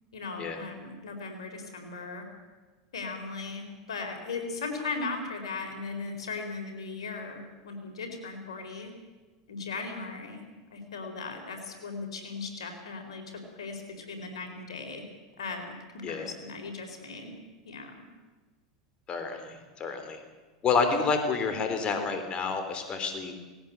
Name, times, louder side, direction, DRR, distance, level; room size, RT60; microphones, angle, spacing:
voice 1, 0.1-2.2 2.9-8.9 9.5-10.4 10.7-15.0 15.4-15.6 15.9-17.3 17.6-17.9, left 4 dB, 85° left, 4 dB, 4.3 m, -38 dB
voice 2, 16.0-16.3 19.1-20.2 20.6-23.3, left 5 dB, 35° left, 7 dB, 3.3 m, -29 dB
19.0 x 17.5 x 8.1 m, 1.3 s
hypercardioid pair, 100°, 3 cm